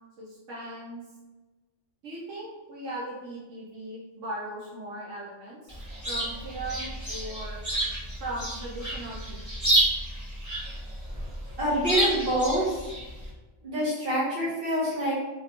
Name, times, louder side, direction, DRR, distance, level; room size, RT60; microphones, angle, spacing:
voice 1, 0.2-1.0 2.0-5.8 6.1-7.6 8.2-9.4, right 1 dB, 80° right, -5 dB, 1.0 m, -38 dB
Chirp tweet, 5.7-13.3, right 1 dB, 15° right, 0.9 m, -30 dB
voice 2, 11.6-12.8 13.6-15.1, equal, 50° right, -7 dB, 1.3 m, -26 dB
3.2 x 2.5 x 2.8 m, 1.2 s
omnidirectional pair, 1.3 m